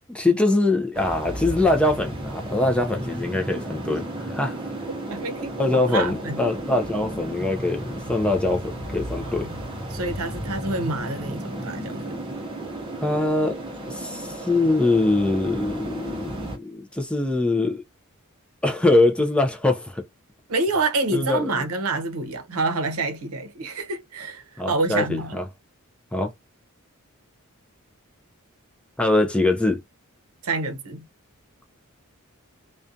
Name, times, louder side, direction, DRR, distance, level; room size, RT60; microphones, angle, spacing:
voice 1, 0.1-4.6 5.6-9.5 13.0-17.8 18.6-20.0 21.1-21.7 24.6-25.4 26.1-26.3 29.0-29.8, left 2 dB, 5° left, 0.3 m, -23 dB
sound 1, 0.9-16.6, right 1 dB, 25° right, 0.7 m, -33 dB
voice 2, 5.1-6.4 9.2-9.5 9.9-12.2 20.5-25.4 30.4-31.0, right 3 dB, 80° right, 0.6 m, -27 dB
2.5 x 2.2 x 2.5 m
head